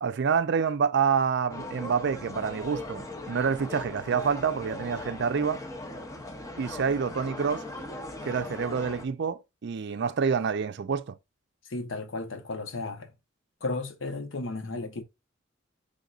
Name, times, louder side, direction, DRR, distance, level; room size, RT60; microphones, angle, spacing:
voice 1, 0.0-5.6 6.6-7.6 8.2-11.2, right 6 dB, 60° right, 0.4 m, -27 dB
sound 1, 1.5-9.1, left 2 dB, 15° left, 0.7 m, -39 dB
voice 2, 11.7-13.1 13.6-15.0, left 3 dB, 70° left, 0.8 m, -34 dB
5.2 x 3.6 x 2.3 m
head